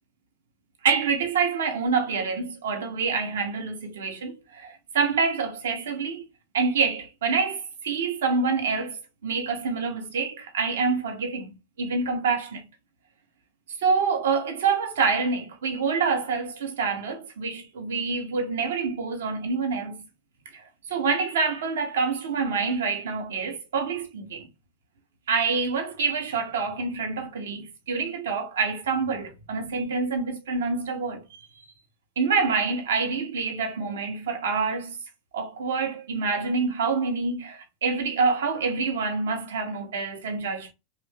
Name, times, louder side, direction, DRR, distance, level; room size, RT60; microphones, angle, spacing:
voice 1, 0.8-6.2 6.5-12.7 13.8-20.0 20.5-24.5 25.3-31.5 32.2-35.0 35.3-40.7, right 5 dB, 60° right, 1.0 m, -27 dB
3.4 x 2.5 x 3.4 m
figure-of-eight pair, 90°, 0 cm